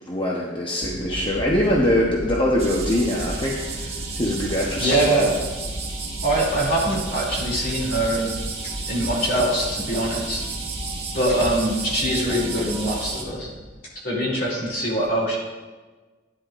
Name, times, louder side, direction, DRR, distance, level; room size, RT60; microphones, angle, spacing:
voice 1, 0.0-5.3, left 1 dB, 25° left, -3 dB, 0.9 m, -23 dB
sound 1, 0.8-13.8, equal, 90° right, 1.2 m, -35 dB
sound 2, 2.6-13.2, right 5 dB, 35° right, 1.3 m, -33 dB
voice 2, 4.8-5.3 6.2-8.3 8.9-10.4 11.1-13.5 14.0-15.4, right 1 dB, 55° left, -3 dB, 2.8 m, -23 dB
12.0 x 9.9 x 2.5 m, 1.3 s
head